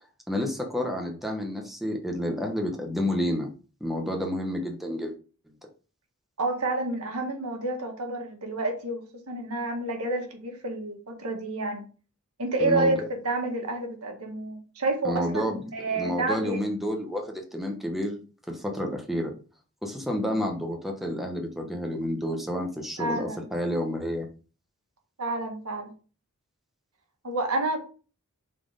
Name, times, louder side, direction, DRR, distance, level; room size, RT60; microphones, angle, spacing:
voice 1, 0.3-3.5 3.8-5.1 12.6-13.0 15.0-15.6 15.9-18.2 18.5-19.3 19.8-24.3, equal, ahead, 1 dB, 1.0 m, -30 dB
voice 2, 6.4-11.8 12.4-16.6 23.0-23.5 25.2-25.9 27.2-27.8, right 2 dB, 85° right, 3 dB, 1.7 m, -29 dB
5.7 x 4.3 x 5.0 m, 0.37 s
head